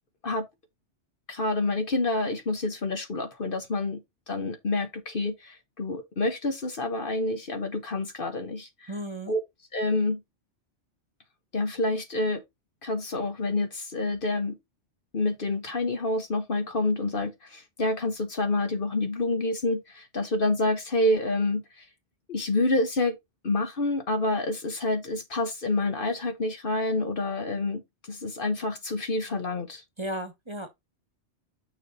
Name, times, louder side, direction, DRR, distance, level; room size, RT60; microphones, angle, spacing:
voice 1, 1.3-4.0 4.3-8.9 9.3-9.4 9.7-10.2 11.5-12.4 12.8-14.6 15.1-21.8 22.3-23.1 23.4-27.8 28.1-29.8, left 2 dB, 50° left, 1.2 m, -28 dB
voice 2, 8.9-9.3 30.0-30.7, right 1 dB, 25° right, 1.3 m, -34 dB
6.4 x 5.1 x 3.9 m
omnidirectional pair, 1.2 m